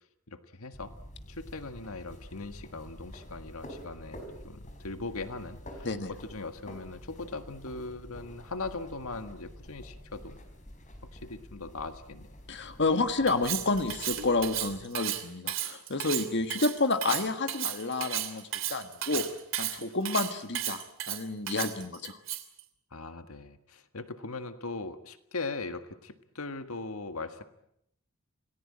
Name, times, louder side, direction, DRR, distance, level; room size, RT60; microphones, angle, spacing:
voice 1, 0.3-1.0 1.3-10.4 11.1-12.3 19.1-19.2 21.8-21.9 22.9-27.4, left 3 dB, 85° left, 9 dB, 1.7 m, -40 dB
sound 1, 0.7-14.8, equal, 35° left, 4.6 m, -48 dB
voice 2, 12.5-19.3 19.6-22.2, left 3 dB, 55° left, 8 dB, 1.7 m, -30 dB
Cutlery silverware, 13.3-22.6, right 12 dB, 65° right, 2.9 m, -34 dB
28.0 x 19.0 x 8.8 m, 0.76 s
head